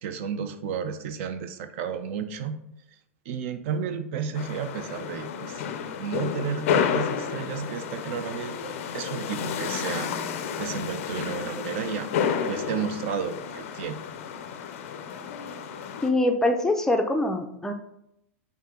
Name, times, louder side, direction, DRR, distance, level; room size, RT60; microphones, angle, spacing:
voice 1, 0.0-2.6 3.3-5.6 6.0-10.1 10.6-12.1 12.5-14.0, right 7 dB, 60° right, 9 dB, 0.5 m, -32 dB
sound 1, 4.3-16.1, left 7 dB, 65° left, 0.5 m, -31 dB
voice 2, 16.0-17.7, left 1 dB, 5° left, 4 dB, 0.4 m, -24 dB
4.7 x 2.7 x 3.7 m, 0.79 s
hypercardioid pair, 120°, 8 cm